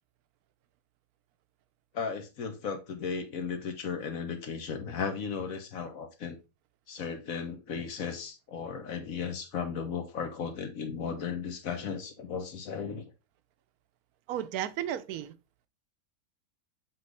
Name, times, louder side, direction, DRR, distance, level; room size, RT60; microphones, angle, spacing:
voice 1, 1.9-6.4 6.9-13.1, left 6 dB, 65° left, 1.4 m, -35 dB
voice 2, 14.3-15.3, right 11 dB, 75° right, 1.1 m, -33 dB
7.6 x 3.9 x 3.2 m
omnidirectional pair, 1.6 m